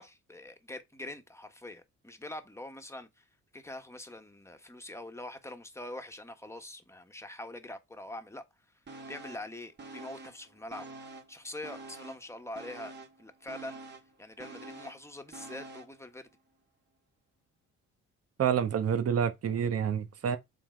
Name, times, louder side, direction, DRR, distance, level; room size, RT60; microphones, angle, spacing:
voice 1, 0.0-3.2 3.5-8.5 9.1-10.9 11.3-12.9 13.2-13.8 14.2-16.3, left 1 dB, 10° left, 1.4 m, -44 dB
sound 1, 8.9-9.5 9.8-11.4 11.6-16.0 16.4-16.5, right 3 dB, 35° right, 1.9 m, -47 dB
voice 2, 18.4-20.4, right 8 dB, 55° right, 1.2 m, -28 dB
7.3 x 3.9 x 4.6 m
cardioid pair, 90°, 30 cm